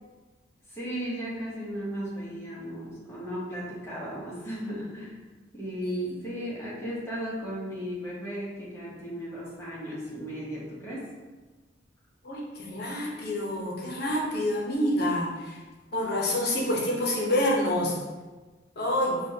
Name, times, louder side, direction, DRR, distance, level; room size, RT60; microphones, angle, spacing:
voice 1, 0.7-5.2 5.5-11.0, equal, 15° left, -7 dB, 1.0 m, -36 dB
voice 2, 5.8-6.2 12.2-15.6 15.9-18.0 18.8-19.2, left 1 dB, 55° left, -3 dB, 0.9 m, -27 dB
4.9 x 2.4 x 2.8 m, 1.3 s
head